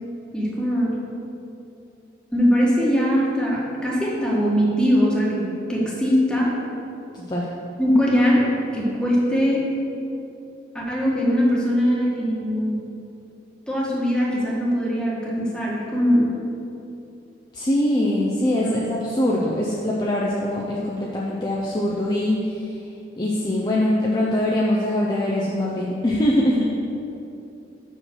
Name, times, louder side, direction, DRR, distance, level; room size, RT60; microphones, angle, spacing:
voice 1, 0.3-1.0 2.3-5.4 5.7-6.5 7.8-9.6 10.7-12.8 13.7-16.3 18.6-18.9, equal, 5° left, -5 dB, 1.3 m, -21 dB
voice 2, 7.1-7.5 17.5-22.5 23.2-26.6, left 1 dB, 25° left, -4 dB, 0.5 m, -22 dB
5.7 x 5.0 x 6.3 m, 2.7 s
head